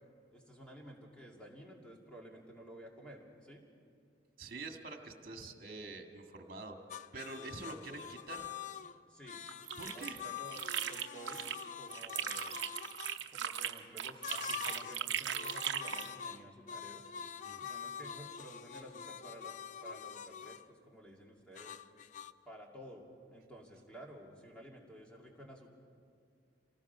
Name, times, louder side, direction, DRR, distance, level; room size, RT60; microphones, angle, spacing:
voice 1, 0.3-3.6 7.4-8.0 9.1-9.4 9.9-12.6 13.3-17.0 17.6-21.7 22.5-25.7, right 1 dB, 5° left, -1 dB, 2.5 m, -53 dB
voice 2, 4.4-6.8 7.1-8.5 9.8-10.2 17.4-17.6, right 3 dB, 50° right, 4 dB, 1.8 m, -46 dB
sound 1, 6.9-13.2 14.2-15.1 15.3-20.7 21.5-22.3, left 8 dB, 40° left, 0.4 m, -45 dB
Slime Movement, 9.5-11.6 11.9-16.1, right 9 dB, 70° right, 0.8 m, -38 dB
27.0 x 18.5 x 5.5 m, 2.4 s
head